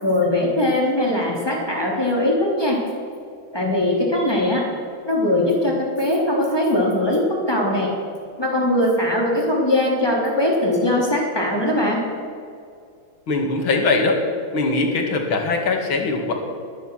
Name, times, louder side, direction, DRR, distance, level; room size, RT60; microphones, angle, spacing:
voice 1, 0.0-2.8 3.5-4.6 5.1-7.9 8.4-12.0, left 1 dB, 10° left, -2 dB, 3.2 m, -20 dB
voice 2, 13.3-14.2 14.5-16.3, left 3 dB, 80° left, 3 dB, 2.8 m, -21 dB
21.0 x 9.6 x 6.4 m, 2.3 s
omnidirectional pair, 2.2 m